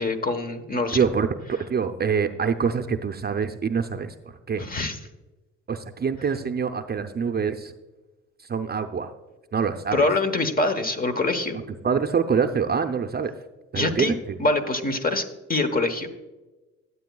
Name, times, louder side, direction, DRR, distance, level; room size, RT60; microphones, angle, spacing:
voice 1, 0.0-1.0 4.6-5.0 9.9-11.6 13.7-14.1 14.4-16.1, left 2 dB, 30° left, 9 dB, 1.1 m, -24 dB
voice 2, 0.9-4.1 4.5-4.6 5.7-7.7 8.5-9.1 9.5-10.0 11.8-13.3 13.7-14.4, right 6 dB, 35° right, 7 dB, 0.6 m, -25 dB
13.0 x 8.3 x 2.3 m, 1.1 s
cardioid pair, 90°, 30 cm